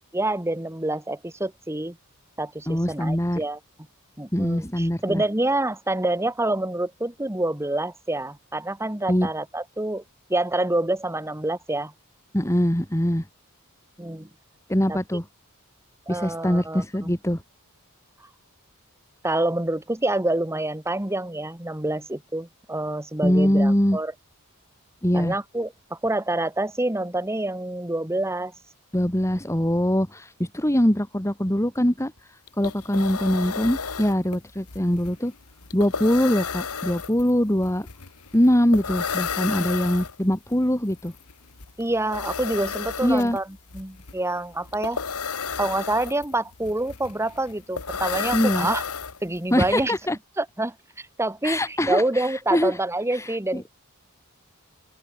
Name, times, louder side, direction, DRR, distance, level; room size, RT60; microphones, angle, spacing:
voice 1, 0.1-2.0 2.4-3.6 4.2-10.0 10.3-11.9 14.0-14.3 14.9-15.0 16.1-17.1 19.2-24.1 25.1-28.5 41.8-43.5 43.7-45.0 45.6-48.8 49.2-50.0 50.4-53.7, right 2 dB, 10° right, 1.6 m, -27 dB
voice 2, 2.7-3.4 4.3-5.2 9.1-9.3 12.3-13.3 14.7-15.3 16.1-17.4 23.2-24.0 25.0-25.3 28.9-32.1 32.6-35.3 35.7-37.9 38.3-41.1 43.0-43.4 48.3-48.7 49.5-50.2 51.4-52.8 53.1-53.6, equal, 15° left, 2.5 m, -23 dB
sound 1, 32.2-32.3 32.5-49.6, left 6 dB, 85° left, 1.9 m, -33 dB
open air
head